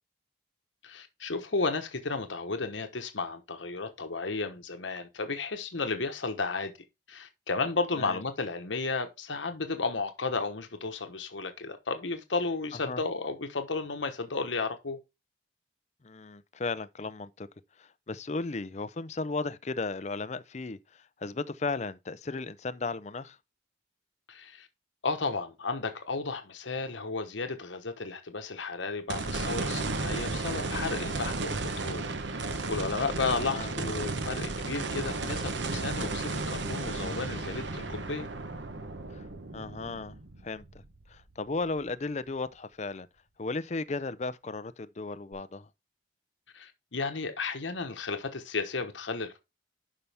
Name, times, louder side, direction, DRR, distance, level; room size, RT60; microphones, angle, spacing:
voice 1, 0.8-6.7 7.1-15.0 24.3-24.7 25.0-32.0 32.3-38.3 46.5-49.4, left 3 dB, 85° left, 1.1 m, -33 dB
voice 2, 16.0-17.5 17.8-23.4 33.5-33.7 39.1-39.2 39.5-40.2 40.4-40.6 41.1-43.1 43.4-45.7, left 3 dB, 35° left, 0.5 m, -35 dB
sound 1, 29.1-41.4 41.9-42.0 45.3-45.4, right 3 dB, 75° right, 0.9 m, -34 dB
11.5 x 5.5 x 3.4 m
head